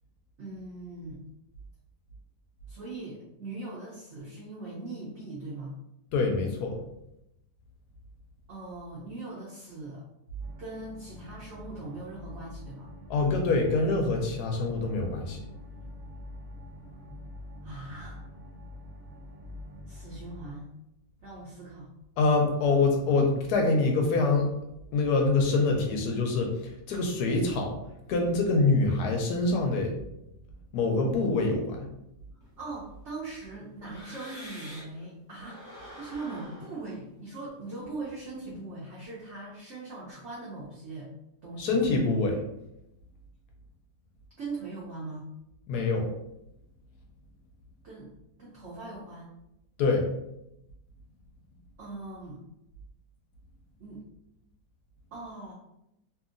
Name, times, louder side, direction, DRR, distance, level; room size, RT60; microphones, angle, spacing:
voice 1, 0.4-1.2 2.7-5.8 8.5-10.0 10.6-12.9 17.6-18.2 19.9-20.7 21.2-21.9 32.6-35.6 36.0-41.1 41.4-41.8 44.4-45.3 47.8-48.1 48.4-49.3 51.8-52.4 53.8-54.0 55.1-55.5, right 2 dB, 75° right, -6 dB, 0.6 m, -40 dB
voice 2, 6.1-6.8 13.1-15.4 22.2-24.5 24.9-27.7 28.1-29.9 30.7-31.8 41.6-42.4 45.7-46.1 49.8-50.0, left 3 dB, 70° left, 2 dB, 1.0 m, -25 dB
sound 1, 10.4-20.5, left 1 dB, 35° right, 0.8 m, -45 dB
sound 2, 32.4-35.0 35.4-38.4, equal, 25° left, 0.4 m, -48 dB
2.8 x 2.6 x 2.5 m, 0.84 s
omnidirectional pair, 2.0 m